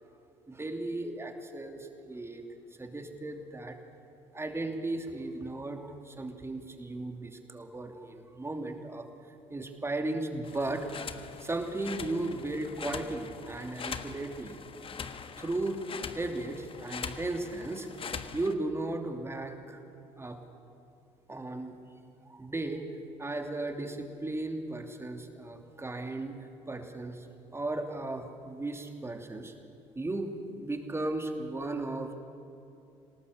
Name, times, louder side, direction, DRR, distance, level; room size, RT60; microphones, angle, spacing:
voice 1, 0.5-2.4 2.8-3.8 4.3-9.1 9.5-10.9 11.4-14.6 15.4-15.9 16.1-19.8 20.2-20.4 21.3-21.8 22.2-22.8 23.2-26.4 26.7-27.3 27.5-29.5 29.9-32.2, right 2 dB, 15° right, 4 dB, 2.8 m, -36 dB
sound 1, 10.4-18.5, left 6 dB, 35° left, 1.4 m, -42 dB
27.0 x 18.5 x 6.8 m, 2.8 s
figure-of-eight pair, 55°, 15 cm